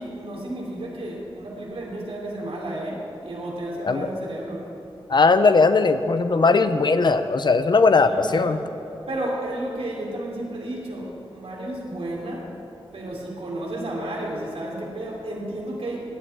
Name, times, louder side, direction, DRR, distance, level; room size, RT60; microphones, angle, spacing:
voice 1, 0.0-4.7 6.5-6.6 7.9-8.6 9.1-12.5 12.9-16.0, right 1 dB, 90° right, -3 dB, 3.2 m, -32 dB
voice 2, 5.1-8.6, left 4 dB, 50° left, 10 dB, 0.7 m, -18 dB
17.5 x 5.9 x 9.7 m, 2.8 s
wide cardioid pair, 115°, 10 cm